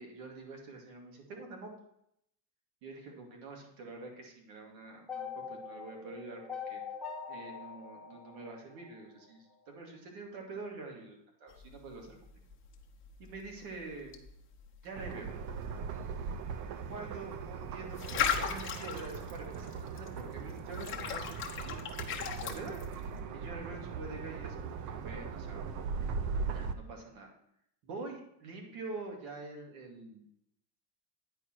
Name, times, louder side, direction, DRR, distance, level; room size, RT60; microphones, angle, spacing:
voice 1, 0.0-1.7 2.8-6.8 7.3-12.2 13.2-14.1 14.8-15.3 16.9-21.8 22.4-22.8 23.3-25.6 26.4-27.3 27.8-30.2, right 3 dB, 70° right, 1 dB, 2.4 m, -46 dB
sound 1, 5.1-9.3, left 6 dB, ahead, 1.4 m, -43 dB
sound 2, 11.5-23.2, left 7 dB, 25° left, 1.0 m, -39 dB
sound 3, 15.0-26.7, right 5 dB, 40° right, 0.6 m, -39 dB
9.7 x 4.8 x 4.5 m, 0.74 s
supercardioid pair, 130°, 48 cm